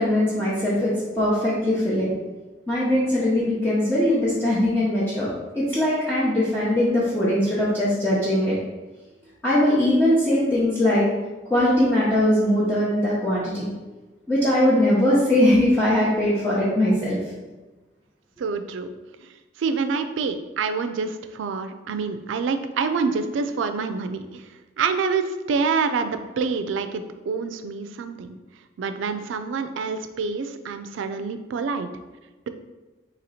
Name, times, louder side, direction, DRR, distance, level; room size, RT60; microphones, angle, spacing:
voice 1, 0.0-2.1 2.7-8.6 9.4-11.1 11.5-13.7 14.3-17.2, left 1 dB, 10° left, -10 dB, 0.6 m, -21 dB
voice 2, 18.4-18.9 19.2-19.3 19.6-24.4 24.8-28.4 28.8-31.9, right 5 dB, 90° right, 9 dB, 0.3 m, -27 dB
2.9 x 2.8 x 4.1 m, 1.2 s
head